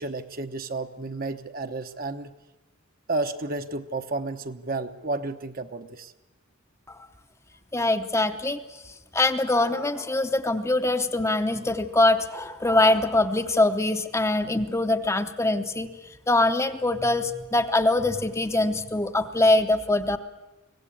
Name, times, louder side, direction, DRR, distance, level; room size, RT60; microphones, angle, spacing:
voice 1, 0.0-2.3 3.1-6.1, right 3 dB, 45° right, 7 dB, 1.0 m, -31 dB
voice 2, 7.7-8.6 9.1-15.9 16.3-20.2, left 2 dB, 15° left, 7 dB, 0.8 m, -23 dB
23.5 x 17.5 x 8.6 m, 1.0 s
head